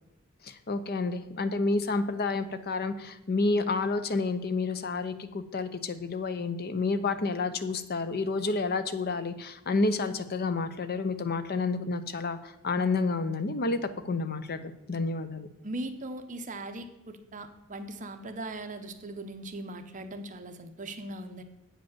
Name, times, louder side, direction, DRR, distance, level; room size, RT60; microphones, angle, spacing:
voice 1, 0.4-15.5, left 3 dB, 45° left, 11 dB, 0.7 m, -30 dB
voice 2, 15.6-21.4, right 2 dB, 35° right, 8 dB, 0.8 m, -39 dB
8.3 x 5.2 x 7.3 m, 0.90 s
head